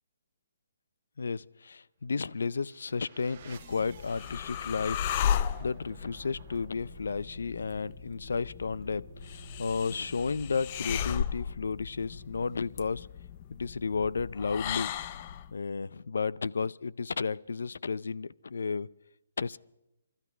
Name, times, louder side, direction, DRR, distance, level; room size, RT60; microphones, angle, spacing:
voice 1, 1.2-5.0 5.6-9.1 9.6-13.1 13.5-14.9 15.5-18.9 19.4-19.6, left 5 dB, 80° left, 0.5 m, -32 dB
sound 1, 2.3-13.1, right 5 dB, 25° right, 1.9 m, -53 dB
sound 2, 3.4-15.5, left 9 dB, 25° left, 0.5 m, -36 dB
27.5 x 13.5 x 3.4 m
hypercardioid pair, 170°, 0 cm